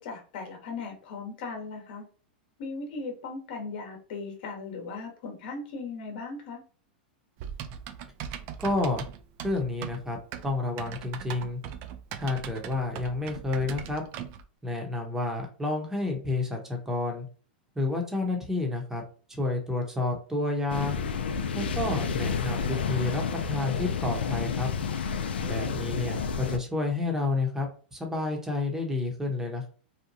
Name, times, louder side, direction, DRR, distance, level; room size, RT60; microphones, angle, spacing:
voice 1, 0.0-2.1 2.6-6.6, left 4 dB, 60° left, 3 dB, 0.9 m, -38 dB
Typing, 7.4-14.4, right 9 dB, 45° right, 0.3 m, -40 dB
voice 2, 8.6-9.0 9.4-10.2 10.4-11.6 12.2-14.0 14.6-17.2 17.8-19.0 19.3-21.0 21.5-24.7 25.4-29.7, left 2 dB, 10° right, 2 dB, 0.8 m, -30 dB
sound 1, 20.7-26.6, left 6 dB, 90° left, 0.4 m, -30 dB
2.8 x 2.2 x 2.6 m, 0.38 s
hypercardioid pair, 125°, 5 cm